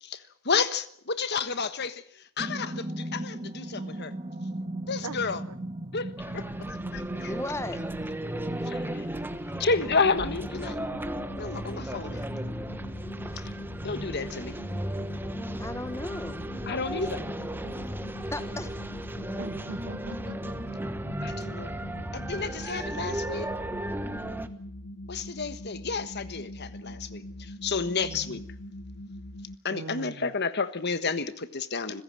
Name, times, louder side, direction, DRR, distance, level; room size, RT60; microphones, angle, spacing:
voice 1, 0.0-4.1 4.9-5.4 5.9-7.3 8.7-9.1 9.6-10.8 11.4-12.3 13.8-14.6 16.7-17.2 21.2-21.7 22.1-23.5 25.1-28.4 29.6-32.0, left 4 dB, 50° left, 1.4 m, -31 dB
sound 1, 2.4-10.4, right 1 dB, 30° right, 1.7 m, -37 dB
sound 2, 6.2-24.5, right 1 dB, 10° right, 1.2 m, -36 dB
voice 2, 7.3-7.8 9.4-9.6 12.1-12.2 13.3-13.4 15.6-16.5 18.3-18.7, left 1 dB, 10° left, 1.3 m, -36 dB
sound 3, 10.0-29.6, left 1 dB, 80° left, 1.2 m, -42 dB
voice 3, 19.4-20.6 28.0-28.4 29.7-30.3, right 3 dB, 85° right, 0.8 m, -40 dB
25.5 x 16.0 x 7.5 m
head